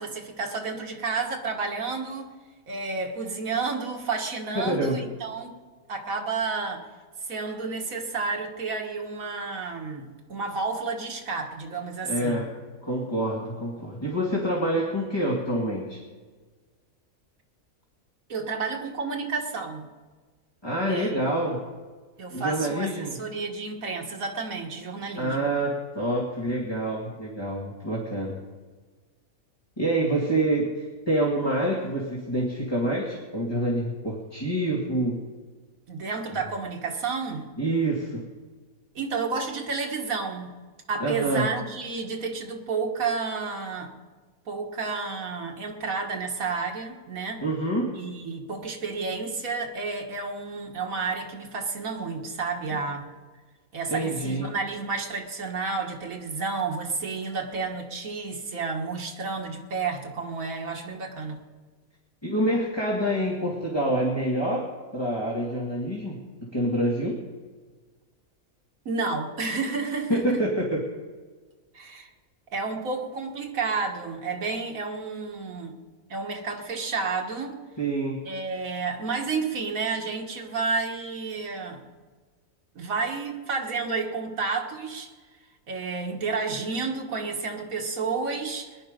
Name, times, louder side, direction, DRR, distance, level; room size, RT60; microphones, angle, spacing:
voice 1, 0.0-2.3 2.7-5.6 5.9-6.9 7.3-12.4 18.3-19.9 20.9-21.2 22.2-25.5 35.9-37.5 39.0-40.5 40.9-43.9 44.5-47.4 47.9-53.1 53.7-61.4 68.9-70.4 71.7-72.1 72.5-75.7 76.1-77.6 78.3-81.8 82.8-85.1 85.7-88.8, right 4 dB, 70° right, 2 dB, 2.0 m, -31 dB
voice 2, 4.5-5.0 12.0-12.5 12.8-16.0 20.6-21.6 22.3-23.2 25.2-28.4 29.8-35.2 37.6-38.2 41.0-41.5 47.4-48.0 52.7-52.8 53.9-54.5 62.2-66.2 66.5-67.2 70.1-70.8 77.8-78.2, right 1 dB, 20° left, -4 dB, 2.0 m, -27 dB
21.0 x 11.0 x 5.2 m, 1.4 s
omnidirectional pair, 1.5 m